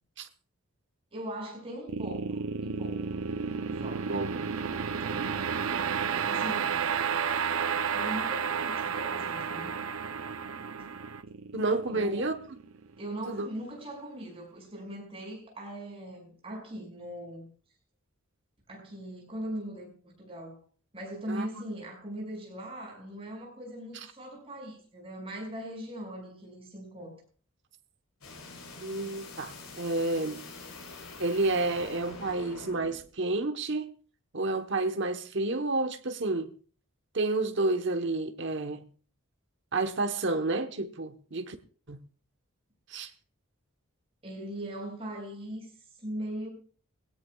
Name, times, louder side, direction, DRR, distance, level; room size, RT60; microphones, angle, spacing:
voice 1, 1.1-3.2 3.7-4.1 5.0-5.3 6.2-6.9 7.9-9.7 11.9-12.2 13.0-17.5 18.7-19.9 20.2-20.6 20.9-27.2 44.2-45.7 46.0-46.5, right 1 dB, 25° right, 5.8 m, -40 dB
sound 1, 1.9-13.1, right 6 dB, 75° right, 0.7 m, -32 dB
voice 2, 3.9-4.3 11.5-12.4 13.3-13.5 21.3-21.6 28.8-30.4 31.2-33.9 34.3-36.5 37.1-38.8 39.7-41.6 41.9-42.0 42.9-43.1, right 2 dB, 55° right, 1.1 m, -30 dB
sound 2, 28.2-33.0, left 3 dB, 85° left, 4.1 m, -45 dB
21.0 x 16.5 x 2.4 m
head